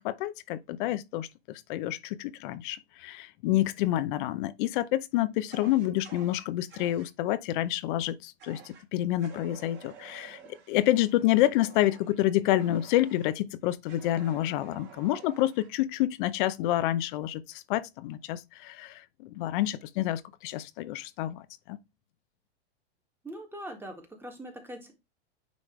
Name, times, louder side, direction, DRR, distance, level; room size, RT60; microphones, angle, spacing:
voice 1, 0.0-10.4 10.7-21.8, left 14 dB, 50° left, 0.7 m, -28 dB
Fire, 5.5-7.1 8.4-8.8 9.2-13.3 13.9-15.7, right 7 dB, 35° right, 2.3 m, -51 dB
voice 2, 23.2-24.9, right 1 dB, 5° right, 1.8 m, -42 dB
9.3 x 3.2 x 3.2 m
hypercardioid pair, 125°, 32 cm